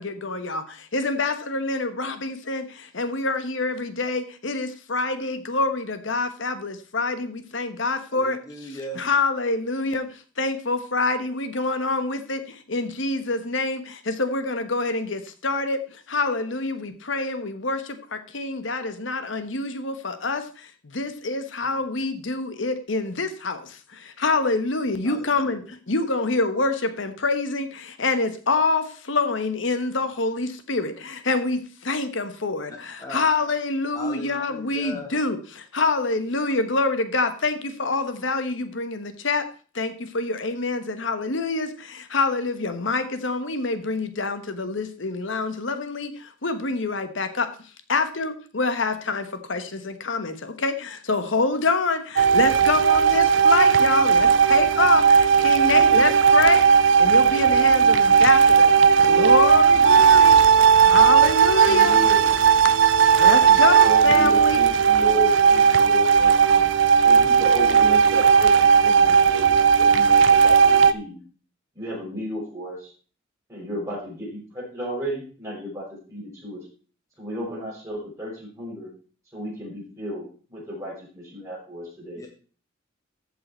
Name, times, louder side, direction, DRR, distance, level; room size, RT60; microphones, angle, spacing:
voice 1, 0.0-8.4 9.0-39.5 39.7-47.5 47.9-56.7 57.0-58.7 59.0-60.4 60.8-62.0 62.6-62.7 63.2-64.6, left 3 dB, 70° left, 9 dB, 1.2 m, -26 dB
voice 2, 8.1-9.0 21.6-21.7 25.0-25.6 32.7-33.2 33.9-35.1 55.5-56.1 62.4-62.7 82.2-82.3, left 1 dB, 15° left, 2 dB, 1.1 m, -39 dB
sound 1, 52.2-70.9, right 6 dB, 65° right, 0.5 m, -16 dB
voice 3, 61.6-62.3 63.7-66.6 67.0-71.2 71.7-72.9 73.5-76.7 77.2-78.9 79.3-80.2 80.5-82.2, equal, 15° right, -4 dB, 5.9 m, -33 dB
14.5 x 5.5 x 4.4 m, 0.39 s
head